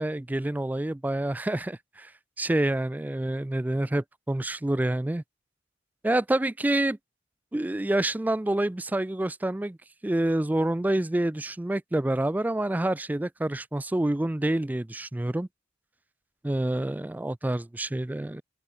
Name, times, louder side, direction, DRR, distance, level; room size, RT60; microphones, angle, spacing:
voice 1, 0.0-2.1 2.4-5.2 6.0-7.0 7.5-9.8 10.0-15.5 16.4-18.4, right 1 dB, 10° right, 0.3 m, -27 dB
open air
head